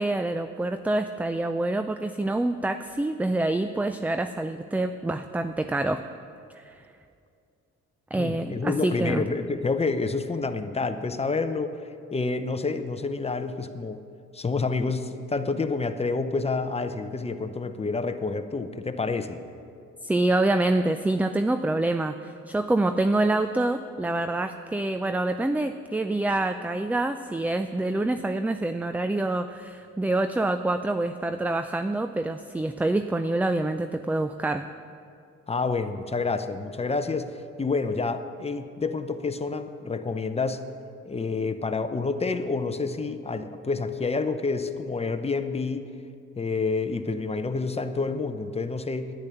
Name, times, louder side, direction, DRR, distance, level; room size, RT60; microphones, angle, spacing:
voice 1, 0.0-6.0 6.6-6.8 8.1-9.2 20.0-34.7, right 2 dB, 5° right, 9 dB, 0.3 m, -26 dB
voice 2, 8.2-11.8 12.1-14.0 14.3-19.5 35.5-40.6 41.0-45.9 46.4-49.1, left 4 dB, 20° left, 9 dB, 0.7 m, -28 dB
10.5 x 10.0 x 6.9 m, 2.4 s
cardioid pair, 90°, 30 cm